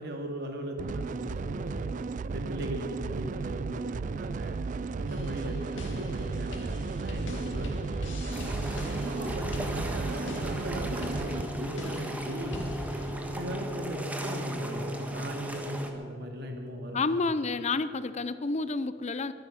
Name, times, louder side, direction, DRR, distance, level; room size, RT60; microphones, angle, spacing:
voice 1, 0.0-1.9 2.2-4.6 5.0-7.8 8.4-12.7 13.2-17.0, equal, 60° right, 3 dB, 2.3 m, -38 dB
sound 1, 0.8-11.4, right 4 dB, 45° right, 0.3 m, -35 dB
sound 2, 5.1-13.1, left 1 dB, 80° left, 2.6 m, -41 dB
sound 3, 8.3-15.9, equal, 10° right, 1.5 m, -35 dB
voice 2, 16.9-19.3, left 3 dB, 35° left, 13 dB, 0.5 m, -29 dB
23.0 x 10.5 x 5.8 m, 2.5 s
head